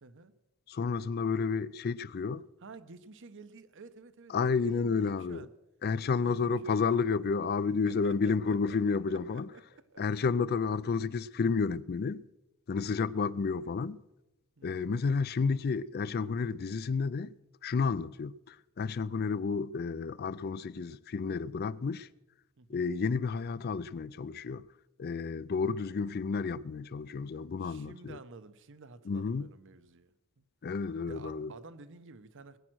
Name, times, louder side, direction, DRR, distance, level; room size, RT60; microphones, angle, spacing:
voice 1, 0.0-0.3 2.6-5.5 6.2-7.0 7.8-10.0 12.7-13.0 14.6-14.9 22.6-22.9 25.6-26.3 27.6-30.4 31.0-32.6, right 3 dB, 60° right, 0.8 m, -52 dB
voice 2, 0.7-2.4 4.3-5.5 5.8-9.5 10.0-12.2 12.7-14.0 14.6-17.4 17.6-22.1 22.7-24.6 25.0-28.2 29.1-29.5 30.6-31.5, left 5 dB, 45° left, 0.4 m, -31 dB
19.5 x 9.0 x 6.2 m
head